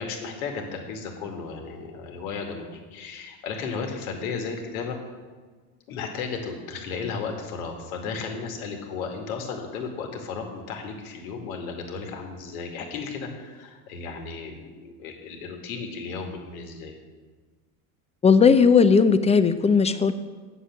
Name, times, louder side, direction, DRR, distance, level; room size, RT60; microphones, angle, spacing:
voice 1, 0.0-5.0 5.9-17.0, left 5 dB, 75° left, 3 dB, 2.1 m, -34 dB
voice 2, 18.2-20.1, left 5 dB, 15° left, 11 dB, 0.6 m, -17 dB
8.9 x 7.0 x 7.4 m, 1.4 s
hypercardioid pair, 85°, 43 cm